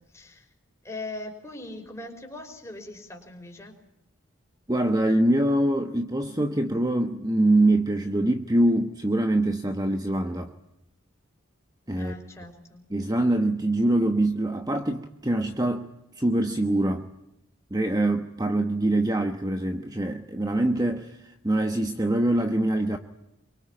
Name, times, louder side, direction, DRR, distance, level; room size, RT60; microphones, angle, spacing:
voice 1, 0.1-0.5 0.8-3.7 6.2-6.4 12.0-12.9, left 2 dB, 15° left, 5.2 m, -40 dB
voice 2, 4.7-10.5 11.9-12.2 12.9-15.9 16.2-17.1 17.7-23.0, right 1 dB, 20° right, 1.1 m, -24 dB
26.5 x 24.0 x 8.8 m
head